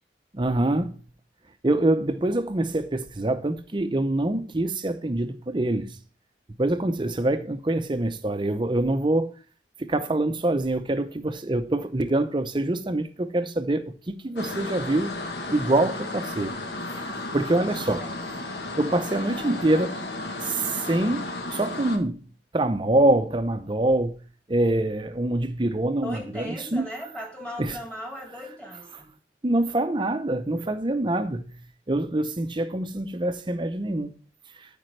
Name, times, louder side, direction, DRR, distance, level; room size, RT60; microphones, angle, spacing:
voice 1, 0.3-0.9 1.6-5.9 6.6-9.3 9.8-15.1 15.5-16.5 16.9-17.0 17.3-18.0 18.8-20.0 20.4-22.2 22.5-24.2 24.5-26.8 27.6-27.7 29.4-31.4 31.9-34.1, right 1 dB, 25° right, 0.6 m, -25 dB
sound 1, 14.4-22.0, left 2 dB, 70° left, 1.2 m, -34 dB
voice 2, 26.0-29.1, equal, 5° left, 1.9 m, -38 dB
13.0 x 5.1 x 3.2 m
head